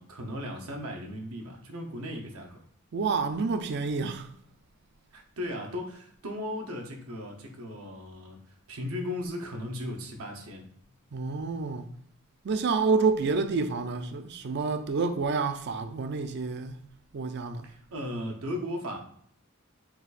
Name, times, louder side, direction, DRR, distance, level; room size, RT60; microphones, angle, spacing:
voice 1, 0.0-2.6 5.1-8.4 8.7-10.7 17.6-19.0, left 1 dB, 80° right, 0.8 m, -36 dB
voice 2, 2.9-4.3 11.1-11.9 12.4-16.8 17.1-17.7, right 4 dB, 50° right, 0.4 m, -28 dB
4.5 x 2.5 x 4.0 m
head